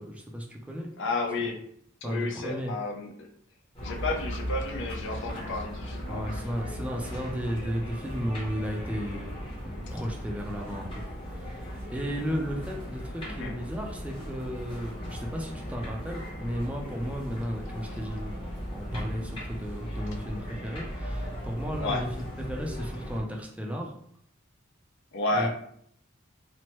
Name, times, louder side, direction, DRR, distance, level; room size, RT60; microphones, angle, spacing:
voice 1, 0.0-0.9 2.0-2.7 6.1-9.3 9.6-22.1 22.4-23.9 25.3-25.5, equal, 5° right, -1 dB, 0.4 m, -34 dB
voice 2, 1.0-1.6 2.0-3.1 3.8-6.2 13.3-13.5 21.8-22.0 25.1-25.5, left 2 dB, 60° left, 2 dB, 0.5 m, -31 dB
sound 1, 3.7-23.2, equal, 25° left, 0.8 m, -37 dB
3.0 x 2.0 x 2.9 m, 0.66 s
head